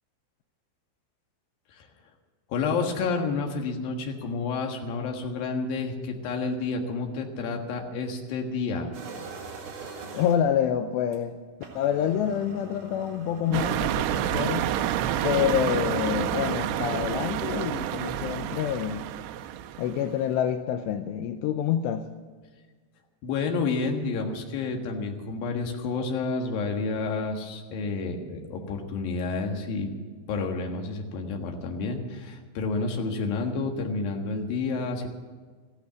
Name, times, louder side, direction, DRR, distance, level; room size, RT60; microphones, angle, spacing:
voice 1, 2.5-8.9 23.2-29.9 30.3-35.1, left 4 dB, 60° left, 2 dB, 2.9 m, -30 dB
sound 1, 8.9-10.6 11.1-11.2 11.5-17.7, right 3 dB, 55° right, 3.1 m, -42 dB
voice 2, 10.1-11.4 11.8-14.7 15.2-19.1 19.8-22.1, left 9 dB, 85° left, 8 dB, 2.5 m, -27 dB
sound 2, 13.5-20.1, right 12 dB, 80° right, 2.6 m, -29 dB
15.0 x 12.0 x 6.9 m, 1.5 s
omnidirectional pair, 5.5 m